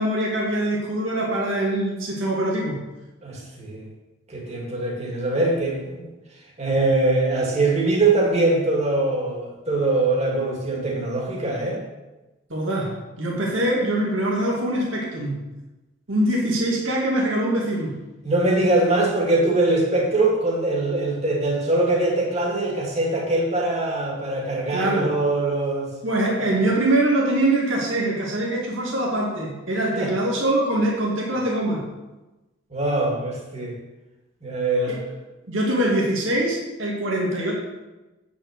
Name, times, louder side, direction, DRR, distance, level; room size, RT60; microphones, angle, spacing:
voice 1, 0.0-2.8 12.5-15.4 16.1-17.9 24.7-25.1 26.0-31.8 34.9-35.0 35.5-37.5, right 1 dB, 75° right, -3 dB, 2.2 m, -23 dB
voice 2, 3.2-3.9 4.3-6.1 6.6-11.8 18.2-25.9 29.9-30.1 32.7-33.8 34.4-35.0, right 2 dB, 35° right, -2 dB, 2.3 m, -22 dB
8.7 x 6.3 x 6.6 m, 1.1 s
head